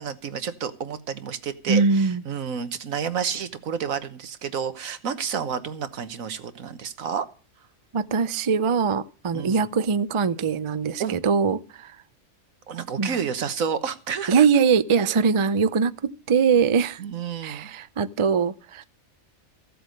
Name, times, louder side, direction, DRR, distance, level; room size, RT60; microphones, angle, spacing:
voice 1, 0.0-7.3 9.3-9.6 11.0-11.2 12.7-14.4 17.0-17.7, right 7 dB, 75° right, 1.5 m, -30 dB
voice 2, 1.7-2.2 7.9-11.9 13.0-13.2 14.3-17.0 17.4-18.8, right 5 dB, 50° right, 0.3 m, -22 dB
15.5 x 7.8 x 6.5 m
omnidirectional pair, 1.4 m